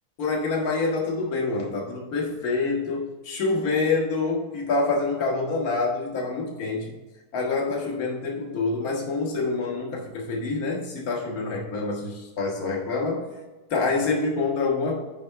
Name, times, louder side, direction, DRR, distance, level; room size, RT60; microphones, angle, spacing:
voice 1, 0.2-7.0 7.3-13.3 13.7-15.0, left 3 dB, 65° left, -1 dB, 1.9 m, -26 dB
10.5 x 3.6 x 4.5 m, 1.2 s
omnidirectional pair, 1.7 m